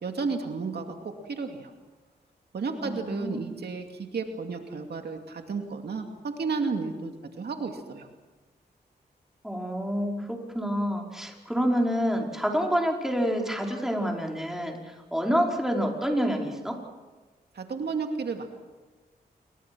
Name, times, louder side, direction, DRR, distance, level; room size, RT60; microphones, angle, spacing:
voice 1, 0.0-1.7 2.5-7.1 7.4-8.1 17.5-18.5, right 4 dB, 75° right, 4 dB, 2.4 m, -32 dB
voice 2, 2.8-3.4 9.4-16.8, equal, ahead, 0 dB, 4.9 m, -28 dB
28.0 x 23.0 x 6.2 m, 1.3 s
cardioid pair, 70°, 17 cm